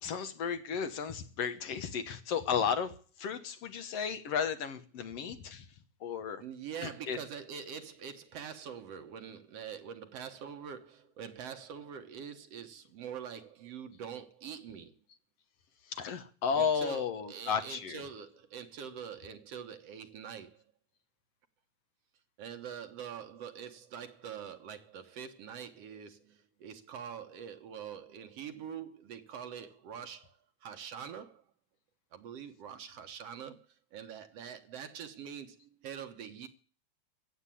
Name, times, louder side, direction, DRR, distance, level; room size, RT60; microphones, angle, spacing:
voice 1, 0.0-5.7 6.0-6.4 6.8-7.2 15.8-18.0, left 6 dB, 65° left, 2.1 m, -34 dB
voice 2, 6.4-14.9 16.6-20.6 22.4-31.4 32.1-36.5, right 8 dB, 65° right, 2.1 m, -44 dB
15.5 x 8.3 x 10.0 m
omnidirectional pair, 3.3 m